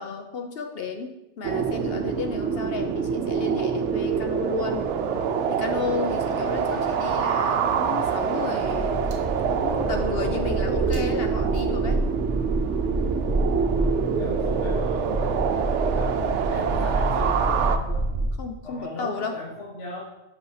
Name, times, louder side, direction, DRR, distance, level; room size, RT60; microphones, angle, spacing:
voice 1, 0.0-4.9 5.5-9.0 9.5-12.0 18.4-19.4, left 4 dB, 60° left, 5 dB, 0.8 m, -33 dB
sound 1, 1.4-17.8, right 6 dB, 80° right, 0.9 m, -26 dB
sound 2, 8.6-18.3, right 2 dB, 30° right, 0.9 m, -28 dB
voice 2, 14.2-18.1 18.6-20.0, left 2 dB, 75° left, -5 dB, 1.8 m, -37 dB
6.3 x 5.6 x 4.8 m, 0.93 s
omnidirectional pair, 1.2 m